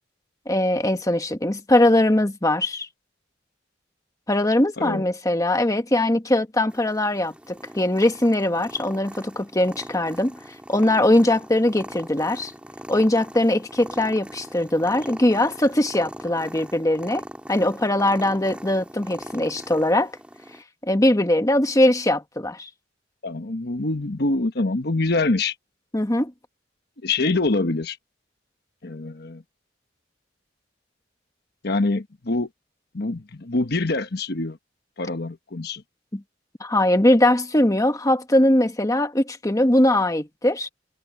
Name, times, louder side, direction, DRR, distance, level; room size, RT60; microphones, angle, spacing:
voice 1, 0.4-2.9 4.3-12.5 12.9-17.2 17.5-20.1 20.8-22.7 25.9-26.3 36.1-36.2 36.6-40.7, left 1 dB, 20° left, 1.3 m, -21 dB
Purr, 6.7-20.6, right 1 dB, 5° right, 2.9 m, -41 dB
voice 2, 23.2-25.5 27.0-28.0 28.8-29.4 31.6-32.5 32.9-34.6 35.0-35.8, left 2 dB, 60° left, 1.2 m, -25 dB
head